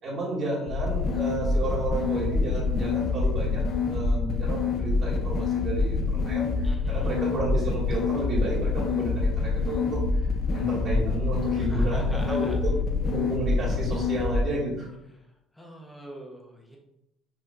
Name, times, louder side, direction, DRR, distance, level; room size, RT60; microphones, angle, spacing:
voice 1, 0.0-3.6 3.9-10.0 10.5-12.7 13.0-14.9, right 2 dB, 35° right, -5 dB, 2.5 m, -32 dB
sound 1, 0.7-14.4, left 4 dB, 35° left, 0.9 m, -26 dB
voice 2, 6.6-7.1 11.6-12.5 15.5-16.8, equal, 5° left, -1 dB, 1.3 m, -44 dB
5.9 x 4.4 x 5.5 m, 0.86 s
cardioid pair, 165°, 0 cm